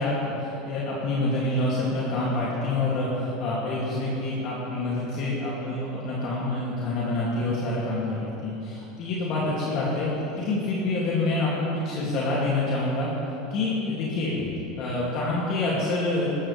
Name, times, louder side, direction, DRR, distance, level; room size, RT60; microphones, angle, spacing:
voice 1, 0.0-13.1 13.5-14.5 14.8-16.3, left 2 dB, 55° left, -6 dB, 2.9 m, -27 dB
15.5 x 13.0 x 3.6 m, 3.0 s
supercardioid pair, 110°, 0 cm